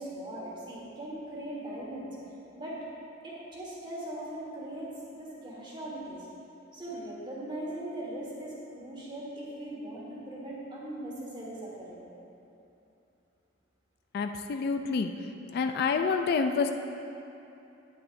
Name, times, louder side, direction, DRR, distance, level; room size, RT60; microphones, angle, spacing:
voice 1, 0.0-2.1 2.6-2.8 3.2-4.9 5.2-6.3 6.7-12.1, right 1 dB, 25° right, -5 dB, 1.6 m, -40 dB
voice 2, 14.1-15.1 15.5-16.7, left 5 dB, 55° left, 6 dB, 0.3 m, -28 dB
9.1 x 8.9 x 2.6 m, 2.8 s
head